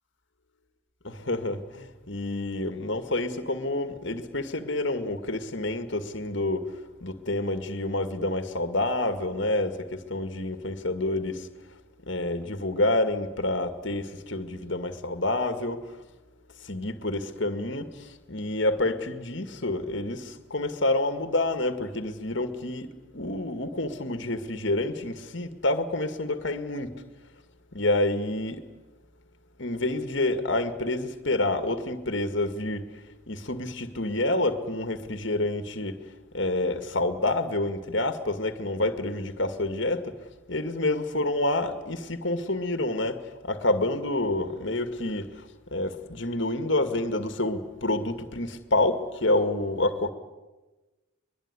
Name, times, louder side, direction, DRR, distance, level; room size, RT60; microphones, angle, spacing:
voice 1, 1.0-6.7 7.0-11.5 12.1-15.8 16.6-27.0 27.7-28.7 29.6-32.9 33.3-36.0 36.3-40.1 40.5-50.1, left 2 dB, 55° left, 2.1 m, -28 dB
23.0 x 22.0 x 9.8 m
head